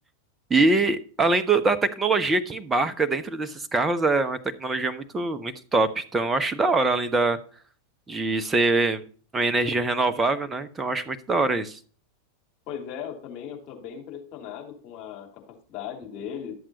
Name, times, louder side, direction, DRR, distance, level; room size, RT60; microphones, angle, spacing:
voice 1, 0.5-7.4 8.1-9.0 9.3-11.8, right 3 dB, 15° right, 11 dB, 1.0 m, -23 dB
voice 2, 12.7-16.6, left 8 dB, 40° left, 1 dB, 3.1 m, -38 dB
12.5 x 7.6 x 4.1 m, 0.44 s
figure-of-eight pair, 90°, 0 cm